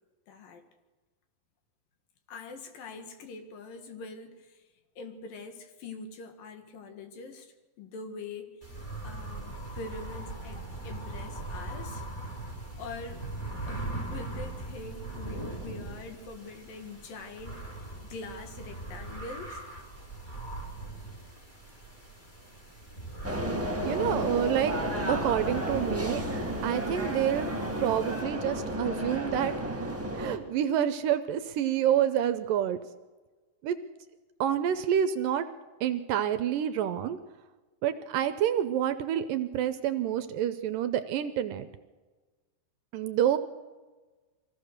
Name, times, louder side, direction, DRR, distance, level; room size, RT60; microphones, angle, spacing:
voice 1, 0.3-0.7 2.3-4.6 5.0-8.5 9.0-12.0 12.8-13.3 13.7-19.6, left 3 dB, 70° left, 6 dB, 3.4 m, -44 dB
sound 1, 8.6-28.2, right 2 dB, 10° left, 3.9 m, -40 dB
sound 2, 23.2-30.4, right 1 dB, 20° right, 0.3 m, -32 dB
voice 2, 23.8-24.7 25.1-26.2 26.6-27.5 27.8-32.8 33.6-33.8 34.4-35.5 35.8-37.2 37.8-41.7 42.9-43.4, right 10 dB, 80° right, 10 dB, 2.4 m, -28 dB
23.5 x 16.5 x 6.6 m, 1.3 s
omnidirectional pair, 4.1 m